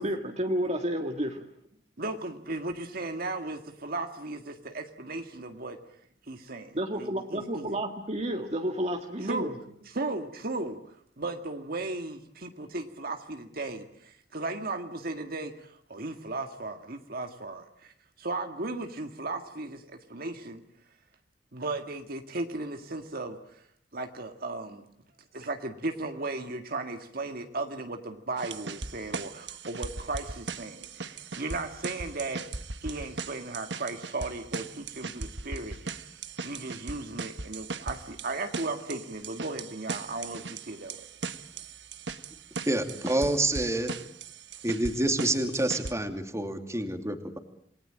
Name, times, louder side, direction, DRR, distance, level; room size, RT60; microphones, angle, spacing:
voice 1, 0.0-1.4 6.7-9.5, equal, 40° right, 4 dB, 2.0 m, -31 dB
voice 2, 2.0-5.8 6.3-7.7 9.2-9.5 9.8-17.9 18.2-20.6 21.5-23.6 23.9-24.9 25.3-32.4 32.8-36.1 36.4-41.1, right 2 dB, 55° right, 6 dB, 1.9 m, -36 dB
sound 1, 28.4-45.9, right 4 dB, 75° right, 1.5 m, -39 dB
voice 3, 42.7-43.9 44.6-47.4, right 1 dB, 15° right, 7 dB, 2.7 m, -28 dB
28.0 x 19.5 x 8.8 m, 0.69 s
head